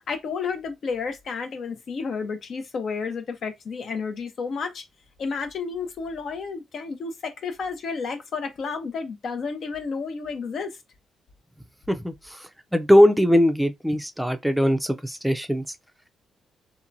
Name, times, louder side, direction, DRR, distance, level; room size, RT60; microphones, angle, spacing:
voice 1, 0.1-4.8 5.2-10.8, left 5 dB, 65° left, 0.6 m, -31 dB
voice 2, 12.7-15.6, equal, 5° right, 0.4 m, -20 dB
2.8 x 2.2 x 2.6 m
cardioid pair, 70°, 0 cm